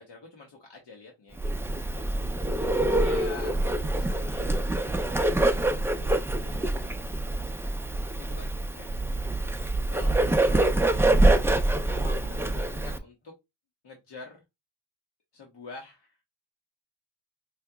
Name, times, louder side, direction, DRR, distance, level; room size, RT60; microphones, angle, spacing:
voice 1, 0.0-4.8 5.2-7.2 8.2-9.4 9.9-11.1 11.9-13.3 13.8-14.4 15.3-16.2, left 3 dB, 85° left, -1 dB, 1.3 m, -48 dB
Bird, 1.4-13.0, right 2 dB, 5° right, 0.4 m, -25 dB
5.5 x 2.8 x 2.3 m, 0.20 s
wide cardioid pair, 125°, 41 cm